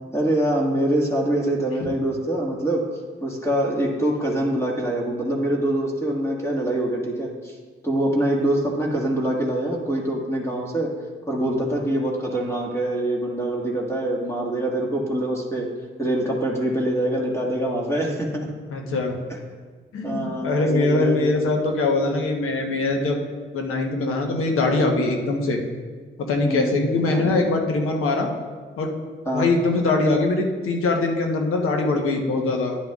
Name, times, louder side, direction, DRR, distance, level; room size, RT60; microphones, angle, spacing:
voice 1, 0.1-2.8 3.2-7.6 7.8-10.9 11.3-15.7 16.0-18.5 20.0-21.3 23.0-23.2 26.5-26.8 27.1-27.3 29.3-29.5 32.3-32.5, right 1 dB, 15° left, -3 dB, 1.8 m, -24 dB
voice 2, 18.7-19.2 19.9-23.2 23.5-25.6 26.2-28.3 28.8-28.9 29.3-32.8, left 2 dB, 90° left, 2 dB, 1.1 m, -22 dB
10.5 x 9.0 x 2.4 m, 1.5 s
cardioid pair, 60°, 21 cm